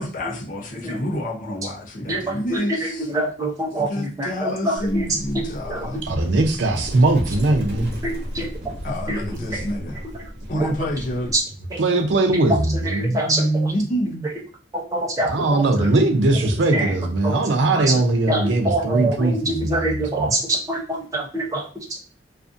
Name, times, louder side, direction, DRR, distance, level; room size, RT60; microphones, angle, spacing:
voice 1, 0.0-3.0 3.8-6.1 8.8-10.0 10.5-11.3 13.3-14.3 15.4-15.5 15.8-16.0, equal, 50° left, 0.6 m, -27 dB
voice 2, 2.1-5.4 5.7-5.8 8.0-8.5 9.1-9.2 9.5-9.7 10.0-10.2 10.6-10.7 11.3-11.4 11.7-11.8 12.3-12.6 12.8-13.7 14.2-14.3 14.7-15.6 16.7-16.9 17.2-17.4 17.7-18.0 18.3-22.0, right 2 dB, 20° right, 0.6 m, -25 dB
Livestock farm animals working animals, 4.8-11.4, equal, 60° right, 1.0 m, -34 dB
voice 3, 6.1-7.9 11.8-13.2 15.2-20.3, right 2 dB, 85° right, 0.5 m, -20 dB
2.5 x 2.4 x 2.4 m
head